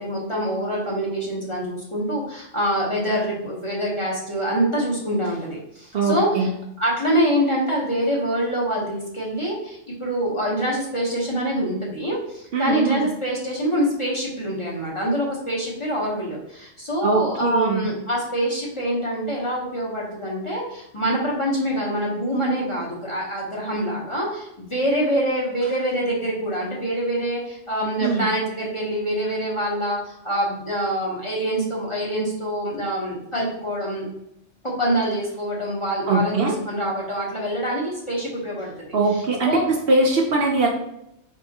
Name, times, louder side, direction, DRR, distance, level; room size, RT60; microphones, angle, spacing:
voice 1, 0.0-6.5 6.8-34.0 34.6-38.7 39.1-39.6, equal, 30° left, -4 dB, 0.9 m, -25 dB
voice 2, 5.9-6.5 12.5-13.1 17.0-17.8 28.0-28.3 36.1-36.6 38.9-40.7, right 3 dB, 60° right, 1 dB, 0.7 m, -21 dB
4.6 x 3.3 x 2.8 m, 0.80 s
omnidirectional pair, 1.2 m